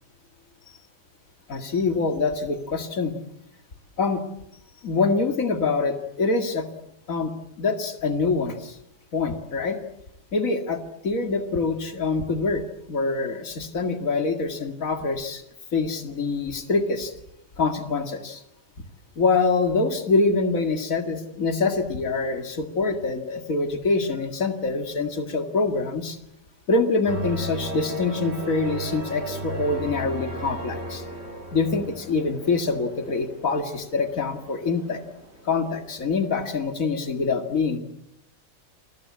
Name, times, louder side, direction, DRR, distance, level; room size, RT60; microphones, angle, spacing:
voice 1, 1.5-3.1 4.0-4.2 4.8-6.7 7.1-7.3 7.6-8.8 9.1-9.8 10.3-12.6 12.9-15.4 15.7-17.1 17.6-18.4 19.2-26.2 26.7-31.0 31.5-35.0 35.4-37.8, left 3 dB, 80° left, 7 dB, 2.5 m, -25 dB
sound 1, 27.1-36.3, right 1 dB, 50° right, 4.7 m, -36 dB
28.5 x 22.0 x 8.5 m, 0.81 s
omnidirectional pair, 1.4 m